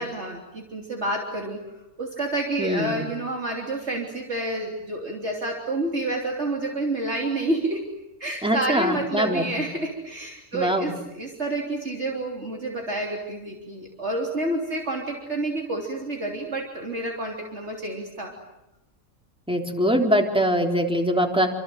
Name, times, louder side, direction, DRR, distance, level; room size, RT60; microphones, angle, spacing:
voice 1, 0.0-1.6 2.0-7.9 8.2-18.3, right 2 dB, 50° right, 0 dB, 3.7 m, -29 dB
voice 2, 2.6-3.1 8.4-9.5 10.5-10.9 19.5-21.5, equal, 5° right, 2 dB, 3.7 m, -23 dB
28.5 x 26.5 x 7.9 m, 0.96 s
omnidirectional pair, 1.5 m